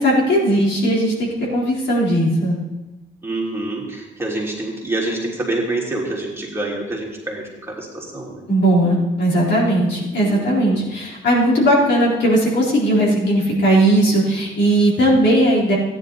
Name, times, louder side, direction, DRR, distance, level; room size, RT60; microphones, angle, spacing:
voice 1, 0.0-2.6 8.5-15.8, right 1 dB, 60° left, -5 dB, 4.2 m, -17 dB
voice 2, 3.2-8.4 10.2-10.9, right 2 dB, 10° right, -4 dB, 3.2 m, -27 dB
14.0 x 10.5 x 4.1 m, 1.1 s
cardioid pair, 90°, 20 cm